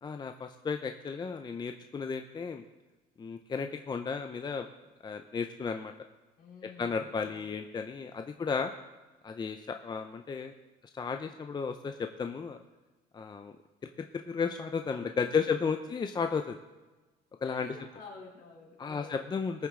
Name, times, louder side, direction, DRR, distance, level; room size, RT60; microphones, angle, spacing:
voice 1, 0.0-2.6 3.2-4.7 5.0-5.9 6.8-8.7 9.2-10.5 10.9-12.6 13.1-13.5 14.1-16.6 17.4-17.8 18.8-19.7, left 5 dB, 25° left, 6 dB, 0.6 m, -33 dB
voice 2, 6.4-7.5 8.3-8.5 15.0-15.1 17.4-19.3, left 4 dB, 65° left, -2 dB, 3.5 m, -50 dB
19.5 x 7.0 x 3.7 m, 1.2 s
cardioid pair, 110°, 17 cm